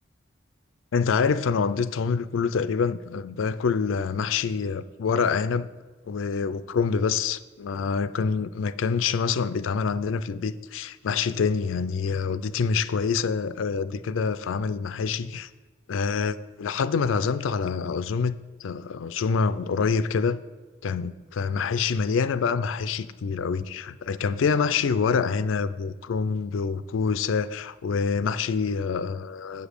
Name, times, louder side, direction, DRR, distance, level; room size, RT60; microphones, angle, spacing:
voice 1, 0.9-5.7 6.0-15.5 15.9-18.4 18.6-20.4 20.8-29.7, left 5 dB, 90° left, 0.4 m, -26 dB
8.0 x 5.0 x 6.6 m
head